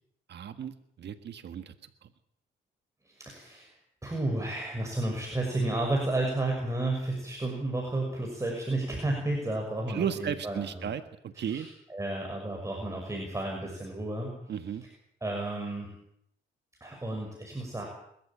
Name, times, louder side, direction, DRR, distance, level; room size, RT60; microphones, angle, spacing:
voice 1, 0.3-2.1 9.9-11.7 14.5-14.8, right 8 dB, 60° right, 9 dB, 1.7 m, -35 dB
voice 2, 3.0-10.9 11.3-14.4 15.2-15.9 16.8-17.8, right 2 dB, 15° right, 0 dB, 6.5 m, -32 dB
27.0 x 14.0 x 9.0 m, 0.72 s
cardioid pair, 90°, 20 cm